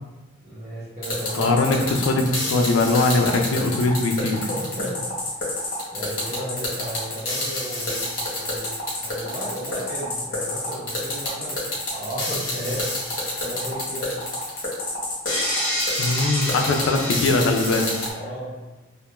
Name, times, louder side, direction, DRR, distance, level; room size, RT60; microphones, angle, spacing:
voice 1, 0.4-1.6 4.5-5.0 5.9-8.1 8.3-8.7 9.0-11.6 11.9-12.9 13.4-14.1 18.1-18.5, equal, 35° right, -7 dB, 0.9 m, -33 dB
sound 1, 1.0-18.1, left 1 dB, 45° left, 0.8 m, -28 dB
voice 2, 1.3-4.4 16.0-17.9, left 2 dB, 70° left, 3 dB, 0.4 m, -21 dB
2.3 x 2.1 x 2.9 m, 1.1 s
head